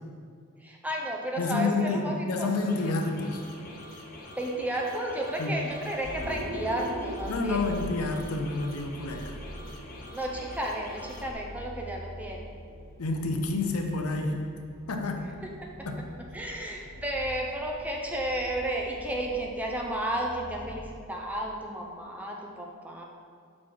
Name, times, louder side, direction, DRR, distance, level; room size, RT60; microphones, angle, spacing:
voice 1, 0.6-2.5 3.7-3.8 4.4-7.6 10.1-12.5 15.6-16.0 16.3-23.0, right 1 dB, 5° right, -1 dB, 0.5 m, -33 dB
voice 2, 1.4-3.4 5.4-5.5 7.3-9.4 13.0-14.4 14.9-15.3 15.9-16.0, left 3 dB, 75° left, 4 dB, 0.6 m, -29 dB
sound 1, 2.4-11.3, left 1 dB, 40° left, 0.7 m, -46 dB
Vehicle, 5.4-20.9, equal, 75° right, 1.1 m, -43 dB
6.0 x 4.3 x 4.7 m, 2.2 s
head